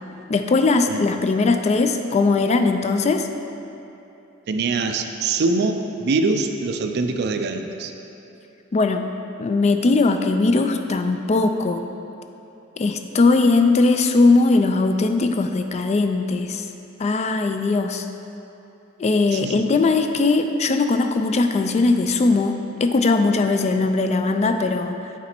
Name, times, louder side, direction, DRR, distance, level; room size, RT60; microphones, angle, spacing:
voice 1, 0.3-3.3 8.7-9.1 9.4-11.8 12.8-16.7 17.0-18.1 19.0-25.0, left 3 dB, 35° left, 7 dB, 0.3 m, -19 dB
voice 2, 4.5-7.9 19.3-19.6, right 3 dB, 55° right, 6 dB, 0.4 m, -23 dB
8.4 x 4.0 x 4.4 m, 2.9 s
head